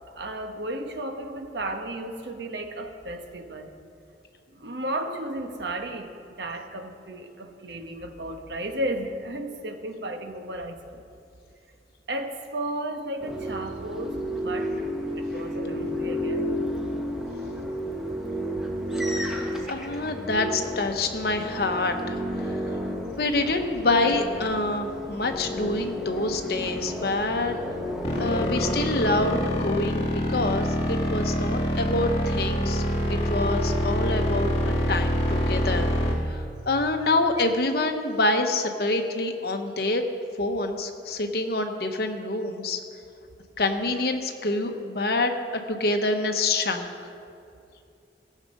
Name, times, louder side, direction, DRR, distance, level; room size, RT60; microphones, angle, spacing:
voice 1, 0.1-3.7 4.5-11.0 12.1-14.7 15.2-16.6 19.6-19.7, right 1 dB, 75° right, 5 dB, 1.1 m, -34 dB
sound 1, 13.2-29.7, equal, 5° right, 1.1 m, -32 dB
voice 2, 19.3-22.6 23.2-27.5 28.2-32.8 33.1-35.9 36.3-40.0 40.4-42.8 43.6-45.3 45.7-46.9, left 2 dB, 60° left, 5 dB, 0.9 m, -26 dB
sound 2, 28.0-36.1, equal, 35° left, 1.8 m, -25 dB
17.0 x 7.4 x 5.3 m, 2.5 s
head